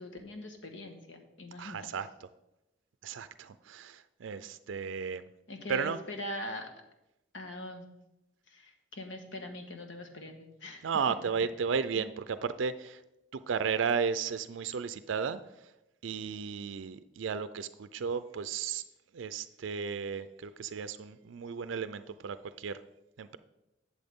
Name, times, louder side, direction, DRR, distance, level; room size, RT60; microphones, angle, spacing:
voice 1, 0.0-1.9 5.5-6.7 7.3-7.9 8.5-10.9 11.9-12.0, left 1 dB, 85° left, 4 dB, 1.4 m, -42 dB
voice 2, 1.6-2.1 3.0-5.3 5.7-6.0 10.8-13.0 13.3-15.4 16.0-18.8 19.1-22.8 23.2-23.4, right 6 dB, 90° right, 12 dB, 0.4 m, -34 dB
12.0 x 7.1 x 3.6 m, 0.91 s
head